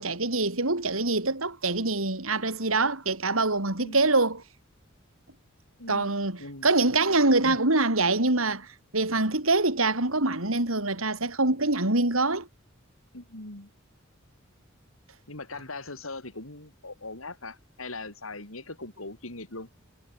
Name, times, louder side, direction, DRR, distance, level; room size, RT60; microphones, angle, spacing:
voice 1, 0.0-4.4 5.9-8.7 8.9-12.5, right 2 dB, 90° right, 4.9 m, -25 dB
voice 2, 5.8-6.1 6.4-6.7 7.4-7.6 13.1-13.7 15.3-19.7, left 2 dB, 90° left, 5.2 m, -40 dB
head